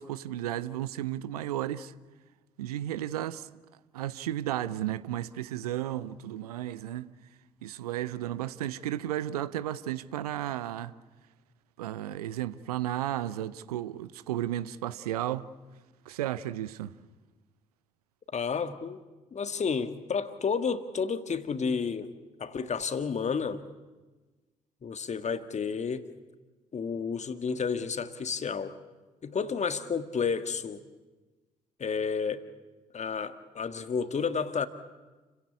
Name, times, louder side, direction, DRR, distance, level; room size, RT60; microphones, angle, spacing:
voice 1, 0.0-1.9 2.6-3.5 3.9-7.1 7.6-10.9 11.8-15.5 16.1-17.0, right 12 dB, 75° right, 0.7 m, -33 dB
voice 2, 18.3-19.0 19.3-22.1 22.4-23.6 24.8-26.1 26.7-28.8 29.2-30.8 31.8-32.4 32.9-34.7, left 5 dB, 35° left, 1.7 m, -31 dB
29.5 x 16.0 x 8.5 m
figure-of-eight pair, 45°, 20 cm